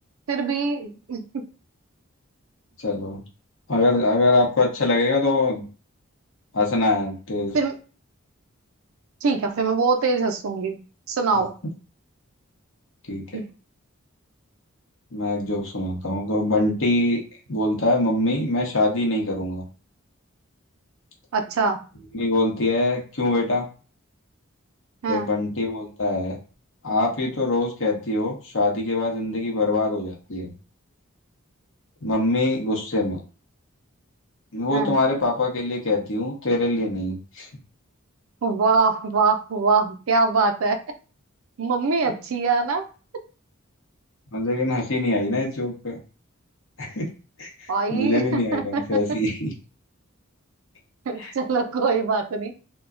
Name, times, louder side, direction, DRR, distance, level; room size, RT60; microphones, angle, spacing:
voice 1, 0.3-1.4 7.5-7.7 9.2-10.8 11.1-11.5 13.3-13.4 21.3-21.8 25.0-25.3 34.7-34.9 38.4-40.8 41.6-42.8 47.7-48.8 51.1-52.5, right 4 dB, 75° right, 6 dB, 0.5 m, -23 dB
voice 2, 2.8-3.2 3.7-5.6 6.5-7.6 11.3-11.4 13.1-13.2 15.1-17.2 17.5-19.6 22.1-23.6 25.1-26.4 26.8-30.5 32.0-33.2 34.5-37.5 44.3-46.0 46.8-47.1 47.4-49.5 51.2-51.3, left 2 dB, 65° left, -1 dB, 0.9 m, -23 dB
2.2 x 2.1 x 3.6 m, 0.36 s
head